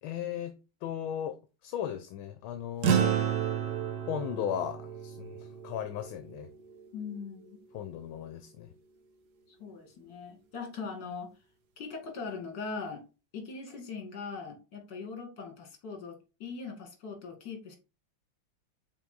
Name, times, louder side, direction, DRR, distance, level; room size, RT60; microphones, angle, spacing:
voice 1, 0.0-1.4 1.6-3.2 4.1-6.5 7.7-8.7, left 10 dB, 75° left, 1.5 m, -36 dB
sound 1, 2.8-7.5, right 9 dB, 60° right, 1.3 m, -31 dB
voice 2, 6.9-7.6 9.5-11.3 11.8-13.0 13.3-17.8, left 4 dB, 55° left, 2.5 m, -40 dB
5.7 x 4.4 x 3.8 m
omnidirectional pair, 2.3 m